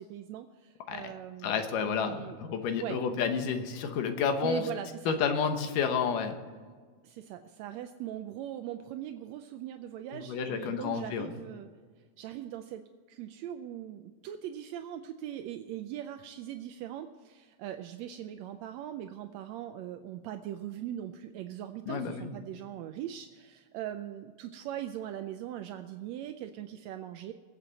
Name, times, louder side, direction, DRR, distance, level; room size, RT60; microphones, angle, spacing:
voice 1, 0.0-2.4 2.8-3.0 4.4-5.2 7.0-11.7 12.2-27.3, right 11 dB, 80° right, 7 dB, 1.6 m, -40 dB
voice 2, 1.4-4.6 5.1-6.4 10.1-11.4 21.9-22.3, left 6 dB, 85° left, 7 dB, 2.8 m, -30 dB
22.0 x 8.1 x 4.1 m, 1.5 s
omnidirectional pair, 3.7 m